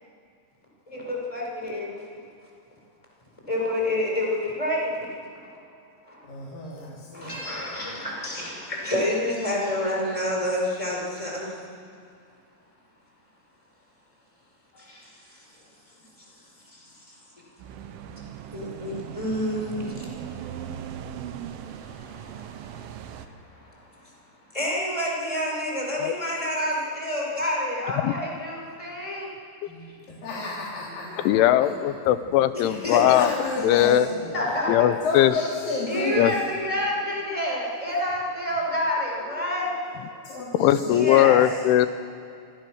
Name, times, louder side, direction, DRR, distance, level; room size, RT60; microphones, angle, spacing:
voice 1, 0.9-2.1 3.5-5.2 6.1-6.3 7.1-11.6 14.7-15.6 16.2-16.3 16.7-17.2 18.5-20.1 21.5-24.2 24.5-29.3 29.9-30.0 32.5-33.2 34.3-34.9 35.9-39.7 40.9-41.4, left 1 dB, 5° left, -2 dB, 5.1 m, -29 dB
voice 2, 6.2-8.7 29.7-32.4 32.9-34.4 35.0-36.4 39.4-39.7 40.1-41.6, left 2 dB, 50° left, -5 dB, 4.4 m, -33 dB
sound 1, 17.6-23.3, right 9 dB, 80° right, 3.6 m, -39 dB
voice 3, 31.3-33.3 33.6-34.1 34.7-35.3 36.2-36.3 40.6-41.9, left 13 dB, 80° left, 12 dB, 3.2 m, -19 dB
28.0 x 25.5 x 6.5 m, 2.5 s
omnidirectional pair, 5.7 m